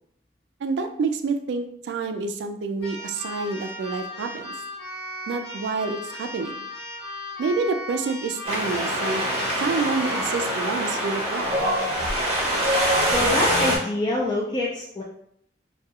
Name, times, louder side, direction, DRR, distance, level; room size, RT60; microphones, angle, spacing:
voice 1, 0.6-4.5 5.3-6.6 7.4-9.2 9.6-11.5, right 4 dB, 75° right, 7 dB, 0.3 m, -28 dB
Keyboard (musical), 2.8-10.6, left 1 dB, 65° left, 0.8 m, -37 dB
Wind, 8.4-13.8, equal, 35° right, 0.6 m, -24 dB
voice 2, 13.1-15.0, left 2 dB, 25° left, -4 dB, 0.3 m, -25 dB
2.3 x 2.3 x 2.8 m, 0.69 s
head